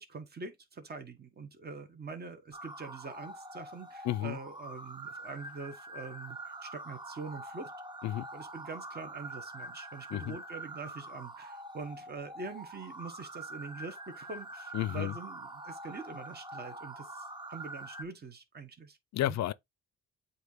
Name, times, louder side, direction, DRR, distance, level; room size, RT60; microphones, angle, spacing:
voice 1, 0.0-7.7 8.3-19.4, right 4 dB, 30° right, 1.4 m, -44 dB
sound 1, 2.5-18.0, right 1 dB, 15° right, 1.0 m, -45 dB
voice 2, 4.0-4.4 8.0-8.3 10.1-10.4 14.7-15.1 19.1-19.5, left 13 dB, 65° left, 0.5 m, -31 dB
8.1 x 2.9 x 4.0 m
cardioid pair, 90°, 30 cm